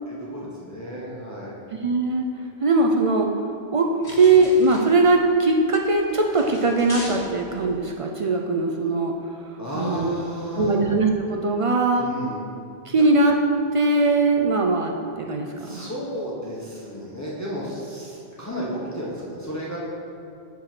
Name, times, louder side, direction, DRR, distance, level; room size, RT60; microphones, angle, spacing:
voice 1, 0.1-1.6 9.6-10.8 11.9-12.4 12.9-13.0 15.6-19.8, equal, 15° left, -6 dB, 1.0 m, -33 dB
voice 2, 1.8-2.3 2.6-3.3 3.7-9.1 9.7-10.2 10.6-12.1 12.9-13.4 13.7-15.9, right 3 dB, 60° right, 2 dB, 0.3 m, -20 dB
sound 1, 4.0-7.9, left 1 dB, 55° left, 1.3 m, -40 dB
5.2 x 4.5 x 5.9 m, 2.6 s
omnidirectional pair, 1.1 m